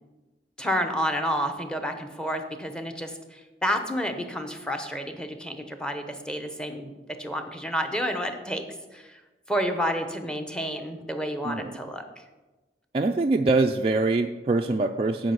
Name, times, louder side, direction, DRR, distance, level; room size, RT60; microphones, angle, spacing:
voice 1, 0.6-6.9 7.2-8.6 8.9-9.2 9.5-12.0, equal, 5° left, 6 dB, 0.9 m, -30 dB
voice 2, 12.9-15.3, right 3 dB, 30° right, 3 dB, 0.4 m, -24 dB
9.9 x 5.1 x 7.8 m, 1.2 s
head